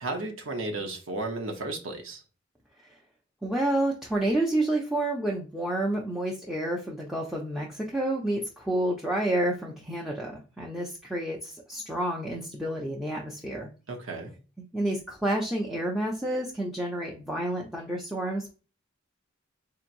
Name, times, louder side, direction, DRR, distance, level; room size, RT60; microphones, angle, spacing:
voice 1, 0.0-2.2 13.9-14.3, right 2 dB, 85° right, 0.9 m, -34 dB
voice 2, 3.4-13.7 14.7-18.5, right 1 dB, ahead, 0.5 m, -29 dB
4.4 x 2.9 x 2.5 m
head